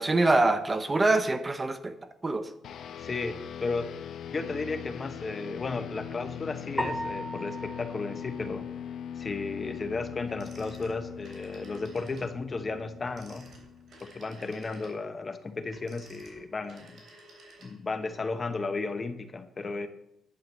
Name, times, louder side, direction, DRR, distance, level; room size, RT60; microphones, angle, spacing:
voice 1, 0.0-1.9 2.2-2.5, right 2 dB, 25° right, 0.7 m, -24 dB
sound 1, 2.6-14.3, left 9 dB, 70° left, 0.7 m, -41 dB
voice 2, 3.0-3.9 4.3-8.7 9.2-13.5 14.0-17.0 17.6-19.9, left 3 dB, 35° left, 0.9 m, -34 dB
sound 2, 6.8-9.2, equal, 5° left, 1.1 m, -37 dB
Telephone, 10.3-12.3 13.0-18.0, right 2 dB, 50° right, 3.2 m, -53 dB
11.0 x 5.0 x 7.5 m
cardioid pair, 95°, 0 cm